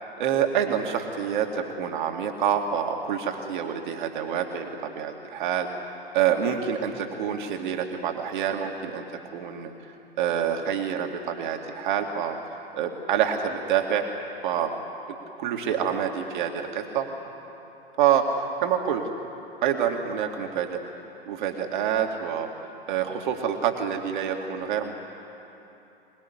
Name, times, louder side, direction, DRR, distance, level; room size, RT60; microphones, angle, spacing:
voice 1, 0.2-5.7 6.1-9.0 9.3-9.7 10.2-12.4 12.7-14.1 14.4-14.8 15.4-17.1 18.0-19.0 19.6-20.8 21.3-22.5 22.9-24.9, right 8 dB, 55° right, 3 dB, 2.3 m, -27 dB
26.0 x 19.5 x 10.0 m, 2.9 s
figure-of-eight pair, 95°, 30 cm